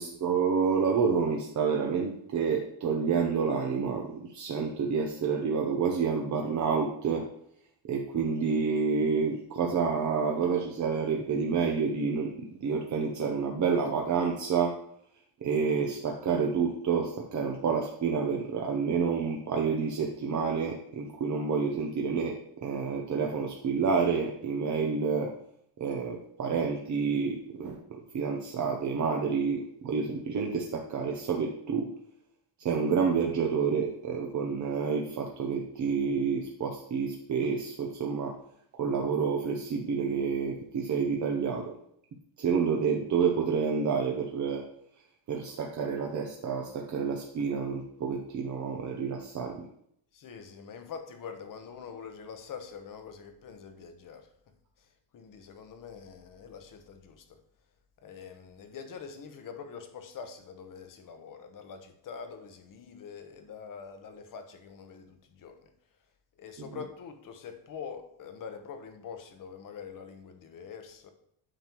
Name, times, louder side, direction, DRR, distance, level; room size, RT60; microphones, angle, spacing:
voice 1, 0.0-7.3 7.9-12.3 12.6-14.8 15.4-25.3 25.8-27.8 28.1-31.9 32.6-38.3 38.8-41.7 42.4-44.6 45.3-49.6, right 5 dB, 40° right, 0.8 m, -29 dB
voice 2, 50.1-54.3 55.1-57.4 58.0-65.7 66.4-71.1, left 6 dB, 45° left, 1.0 m, -44 dB
9.2 x 6.0 x 3.0 m
cardioid pair, 135°, 46 cm